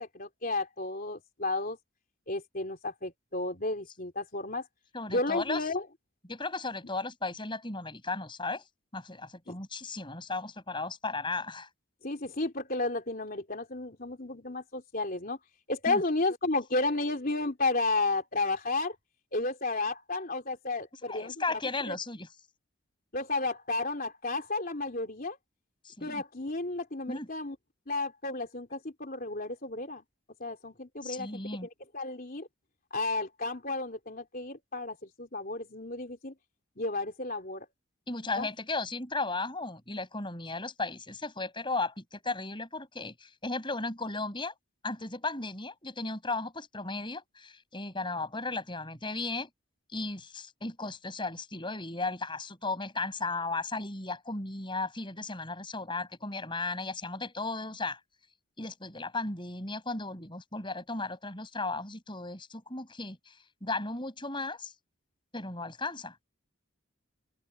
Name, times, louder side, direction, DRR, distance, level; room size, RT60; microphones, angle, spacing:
voice 1, 0.0-1.8 2.3-4.7 5.1-5.9 9.5-9.6 12.0-15.4 15.7-19.0 19.3-22.0 23.1-25.4 26.0-27.6 27.9-30.0 30.4-31.4 31.9-32.5 32.9-36.3 36.8-37.7 38.4-38.5, left 2 dB, 40° left, 3.7 m, -32 dB
voice 2, 4.9-5.6 6.3-8.6 8.9-11.7 15.9-16.0 21.1-22.3 25.8-26.2 27.1-27.3 31.0-31.7 38.1-44.5 44.8-49.5 49.9-58.0 58.6-63.3 63.6-64.7 65.3-66.1, left 3 dB, 20° left, 6.8 m, -35 dB
open air
head